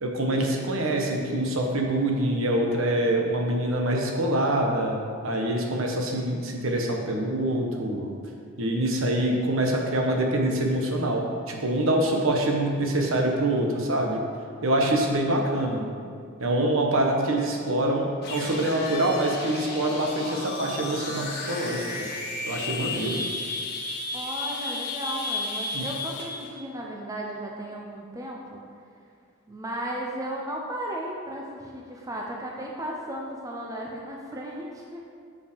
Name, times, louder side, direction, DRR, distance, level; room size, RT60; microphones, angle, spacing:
voice 1, 0.0-8.2 8.6-14.2 14.6-15.9 16.4-22.1 22.5-23.2 25.7-25.9, right 1 dB, 70° right, 1 dB, 1.1 m, -25 dB
voice 2, 15.8-16.2 24.1-28.6 29.5-35.1, right 1 dB, 15° right, -1 dB, 0.7 m, -35 dB
sound 1, 18.2-26.5, left 3 dB, 50° left, 1.4 m, -33 dB
7.2 x 5.6 x 5.1 m, 2.3 s
head